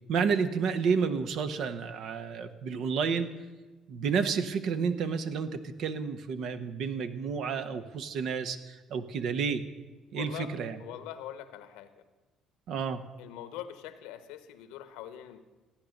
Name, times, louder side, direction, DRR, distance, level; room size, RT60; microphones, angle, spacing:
voice 1, 0.1-3.3 3.9-9.6 10.1-10.7 12.7-13.0, right 6 dB, 70° right, 10 dB, 1.0 m, -30 dB
voice 2, 10.1-10.5 10.8-12.0 13.2-15.4, left 11 dB, 90° left, 11 dB, 1.1 m, -43 dB
14.5 x 9.9 x 6.5 m, 1.2 s
supercardioid pair, 85°, 0 cm